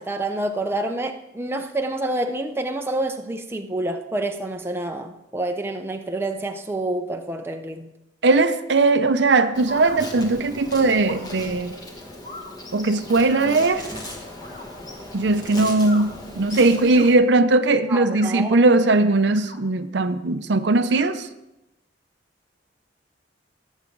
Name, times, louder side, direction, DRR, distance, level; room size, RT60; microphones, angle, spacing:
voice 1, 0.0-7.9 17.9-18.7, right 2 dB, 15° right, 0.6 m, -28 dB
voice 2, 8.2-11.8 12.7-13.9 15.1-21.3, right 3 dB, 65° right, 0.6 m, -19 dB
sound 1, 9.4-10.0 11.0-11.3 12.2-12.5 13.3-13.5 14.4-14.7 15.7-16.1 16.8-17.1 17.9-18.4 19.2-19.6 20.8-21.1, left 2 dB, 40° left, 1.4 m, -40 dB
Insect, 9.5-17.1, left 1 dB, 20° left, 1.6 m, -37 dB
19.5 x 7.3 x 3.9 m
head